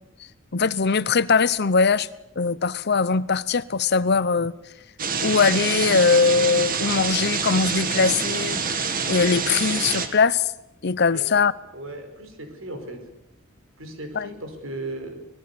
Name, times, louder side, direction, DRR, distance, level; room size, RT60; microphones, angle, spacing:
voice 1, 0.5-2.1 2.4-4.5 5.2-10.5 10.8-11.5 14.2-14.3, left 5 dB, 50° left, 0.8 m, -21 dB
sound 1, 5.0-10.1, right 5 dB, 45° right, 2.1 m, -26 dB
voice 2, 11.7-13.0 13.8-15.2, right 1 dB, 70° right, 5.1 m, -36 dB
25.0 x 20.0 x 7.0 m
head